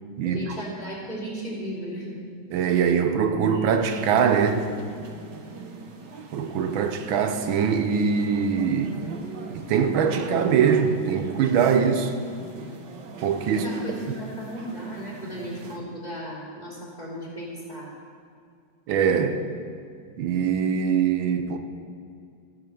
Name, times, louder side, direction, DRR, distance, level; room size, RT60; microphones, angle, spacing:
voice 1, 0.2-2.2 13.5-17.9, equal, 20° left, -6 dB, 2.9 m, -35 dB
voice 2, 2.5-4.7 6.3-9.0 9.5-12.1 13.2-13.6 14.1-14.2 18.9-19.4 20.2-21.6, right 7 dB, 85° right, 7 dB, 1.5 m, -22 dB
sound 1, 3.9-15.8, right 4 dB, 65° right, 1.6 m, -40 dB
13.5 x 5.6 x 7.0 m, 2.3 s
omnidirectional pair, 2.1 m